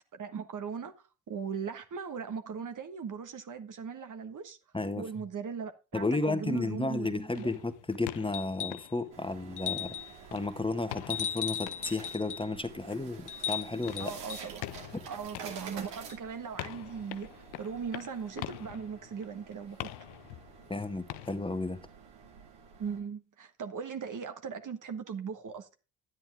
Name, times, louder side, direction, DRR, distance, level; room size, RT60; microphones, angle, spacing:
voice 1, 0.1-0.9 1.3-4.6 5.0-7.5 14.0-14.6 15.1-19.8 22.8-25.8, right 6 dB, 45° right, 1.5 m, -39 dB
voice 2, 4.7-5.0 5.9-10.0 10.3-14.1 20.7-21.8, left 2 dB, 10° left, 1.6 m, -33 dB
sound 1, 7.3-9.9 10.2-21.4, left 16 dB, 65° left, 0.7 m, -46 dB
sound 2, 8.3-8.9 9.6-10.2 11.1-12.5 13.3-14.5 16.1-16.2, left 9 dB, 45° left, 1.1 m, -36 dB
sound 3, 9.1-23.0, right 6 dB, 75° right, 2.6 m, -49 dB
11.0 x 9.7 x 3.6 m
hypercardioid pair, 45°, 42 cm